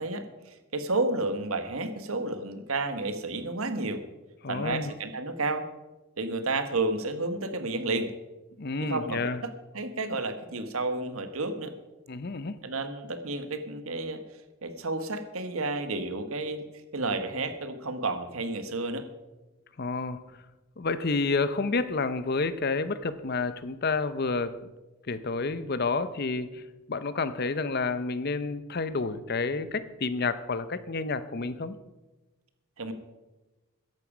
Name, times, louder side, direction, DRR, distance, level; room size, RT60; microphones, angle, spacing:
voice 1, 0.0-4.0 4.5-5.6 6.2-8.1 8.8-11.7 12.6-14.2 14.6-16.6 16.9-19.1 32.8-32.9, right 2 dB, 70° right, 9 dB, 1.3 m, -31 dB
voice 2, 4.4-4.9 8.6-9.4 12.1-12.6 19.8-20.2 20.8-24.6 25.1-26.6 26.9-31.8, left 3 dB, 45° left, 14 dB, 0.6 m, -29 dB
14.5 x 10.5 x 5.0 m, 1.1 s
head